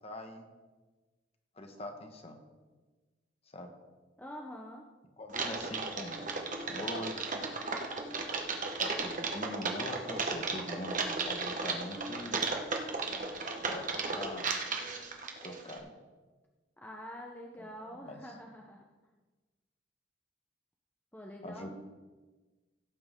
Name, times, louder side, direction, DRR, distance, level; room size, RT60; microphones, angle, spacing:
voice 1, 0.0-0.5 1.6-2.4 3.5-3.7 5.2-6.2 6.7-7.5 8.8-12.4 13.6-14.5 15.4-15.9 18.0-18.2 21.4-21.7, left 1 dB, 35° left, 4 dB, 1.3 m, -42 dB
voice 2, 4.2-4.8 16.8-18.8 21.1-21.7, equal, 10° left, 0 dB, 0.8 m, -46 dB
Typing, 5.3-15.8, right 4 dB, 45° right, 1.2 m, -35 dB
17.0 x 8.7 x 3.7 m, 1.3 s
head